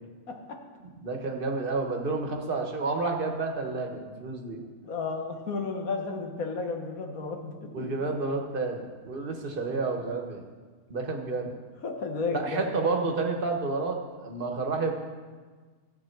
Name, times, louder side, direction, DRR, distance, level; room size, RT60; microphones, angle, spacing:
voice 1, 0.3-0.6 4.8-7.9 11.8-12.7, left 4 dB, 80° left, 3 dB, 1.7 m, -33 dB
voice 2, 1.0-4.6 7.7-10.4 10.9-11.5 12.3-14.9, right 3 dB, 40° right, 3 dB, 1.3 m, -30 dB
13.5 x 8.4 x 4.5 m, 1.4 s
omnidirectional pair, 1.5 m